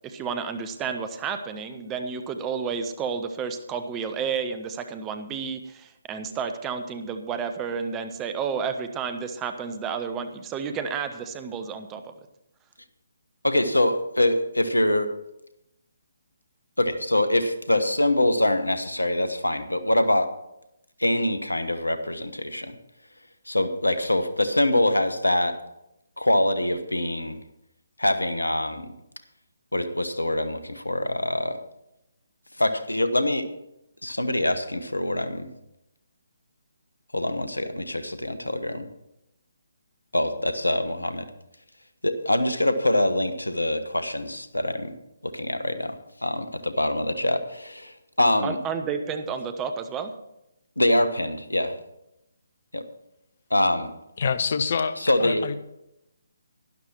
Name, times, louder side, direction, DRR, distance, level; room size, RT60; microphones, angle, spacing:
voice 1, 0.0-12.1 48.4-50.1, right 6 dB, 15° right, 8 dB, 0.9 m, -31 dB
voice 2, 13.4-15.1 16.8-20.3 21.0-22.8 23.5-25.5 26.2-27.4 28.0-28.9 29.7-31.6 32.6-33.5 34.0-35.5 37.1-38.9 40.1-41.3 42.0-45.0 45.2-48.6 50.8-51.8 52.7-52.8 53.5-53.9 55.0-55.5, left 1 dB, 80° left, 11 dB, 1.2 m, -24 dB
voice 3, 54.2-55.6, left 5 dB, 45° left, 13 dB, 0.7 m, -26 dB
12.0 x 11.5 x 4.5 m, 0.86 s
figure-of-eight pair, 140°, 0 cm